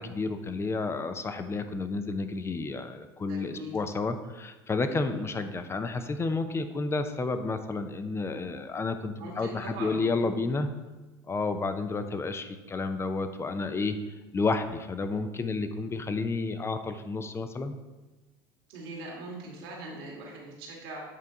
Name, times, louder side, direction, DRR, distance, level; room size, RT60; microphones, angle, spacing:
voice 1, 0.0-10.7 11.3-14.0 14.3-17.8, left 3 dB, 20° left, 9 dB, 0.6 m, -31 dB
voice 2, 3.3-3.8 9.2-10.4 18.7-21.0, right 2 dB, 75° right, -2 dB, 1.9 m, -41 dB
8.3 x 3.5 x 3.9 m, 1.1 s
hypercardioid pair, 85°, 12 cm